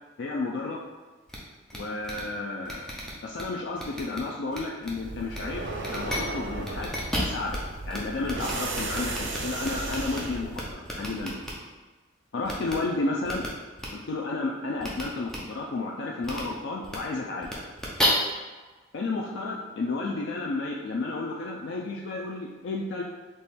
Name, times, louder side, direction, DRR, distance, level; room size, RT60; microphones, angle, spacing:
voice 1, 0.2-0.8 1.7-2.8 3.2-7.6 7.9-11.5 12.3-13.4 13.9-17.5 18.9-23.0, left 3 dB, 60° left, -1 dB, 0.4 m, -32 dB
sound 1, 1.3-1.4 1.7-1.8 2.0-2.2 2.6-3.4 3.8-4.2 4.5-4.9 5.3-5.4 5.8-6.2 6.6-7.6 7.9-8.0 8.2-10.2 10.5-11.5 12.4-12.7 13.2-13.5 13.8-13.9 14.8-15.0 15.3-15.4 16.2-16.4 16.8-17.0 17.4-18.1, equal, 5° left, 0.6 m, -32 dB
sound 2, 5.0-10.7, right 2 dB, 70° right, 0.6 m, -35 dB
4.2 x 3.1 x 3.5 m, 1.3 s
head